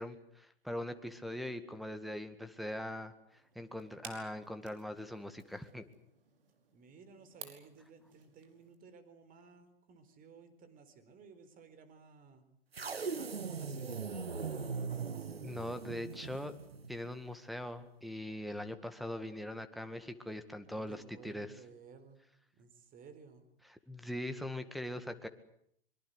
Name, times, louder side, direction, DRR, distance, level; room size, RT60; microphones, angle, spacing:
voice 1, 0.0-5.8 15.4-16.5 16.9-21.6 23.7-25.3, left 1 dB, ahead, 7 dB, 1.9 m, -41 dB
sound 1, 3.3-8.8, right 7 dB, 65° right, 5.3 m, -56 dB
voice 2, 6.7-12.4 13.1-14.5 20.7-22.2 22.6-23.4, right 5 dB, 30° right, 10 dB, 4.3 m, -56 dB
sound 2, 12.7-17.0, right 5 dB, 90° right, 1.7 m, -40 dB
24.5 x 23.0 x 8.2 m, 0.68 s
hypercardioid pair, 110°, 29 cm